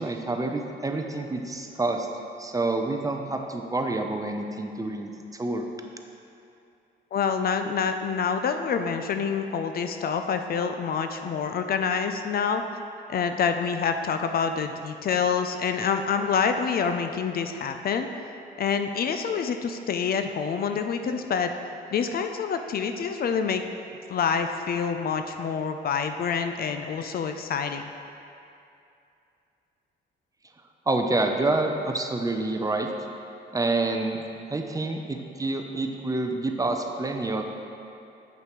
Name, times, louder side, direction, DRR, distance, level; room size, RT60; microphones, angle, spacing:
voice 1, 0.0-2.1 2.4-5.6 30.9-32.9 33.5-34.2 34.5-37.4, right 2 dB, 15° right, 4 dB, 0.5 m, -27 dB
voice 2, 7.1-12.6 13.1-18.1 18.6-21.5 21.9-23.7 24.1-27.9, left 6 dB, 50° left, 7 dB, 0.4 m, -27 dB
7.9 x 5.6 x 3.0 m, 2.6 s
cardioid pair, 90°, 20 cm